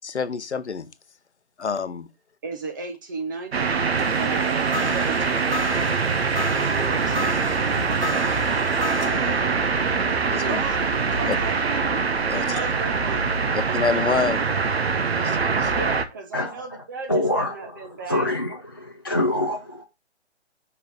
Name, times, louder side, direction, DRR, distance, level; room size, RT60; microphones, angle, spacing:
voice 1, 0.0-0.9 1.6-2.1 10.3-10.6 11.3-11.4 12.3-12.6 13.7-14.5 15.1-15.7, left 5 dB, 75° left, 0.8 m, -27 dB
voice 2, 2.4-5.9 6.7-7.4 10.4-11.6 12.3-13.3 15.7-18.3, right 4 dB, 20° right, 0.7 m, -35 dB
sound 1, 3.5-16.0, right 5 dB, 65° right, 1.1 m, -23 dB
sound 2, 3.8-13.1, equal, 85° right, 3.1 m, -33 dB
voice 3, 17.1-17.5 18.1-19.8, left 1 dB, 20° left, 0.4 m, -25 dB
5.5 x 4.2 x 4.9 m
figure-of-eight pair, 145°, 34 cm